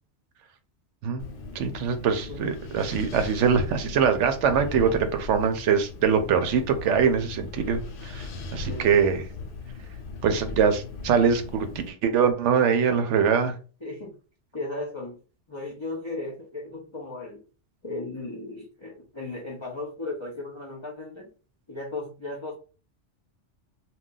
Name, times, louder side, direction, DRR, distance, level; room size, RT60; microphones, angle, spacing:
Wind, 1.2-11.9, left 3 dB, 70° left, 0.9 m, -38 dB
voice 1, 1.5-9.2 10.2-13.5, right 6 dB, 80° right, 8 dB, 0.9 m, -23 dB
voice 2, 13.8-14.1 14.5-15.2 15.5-17.4 17.8-21.3 21.7-22.6, left 2 dB, 35° left, -3 dB, 0.5 m, -36 dB
2.3 x 2.2 x 3.7 m, 0.37 s
omnidirectional pair, 1.2 m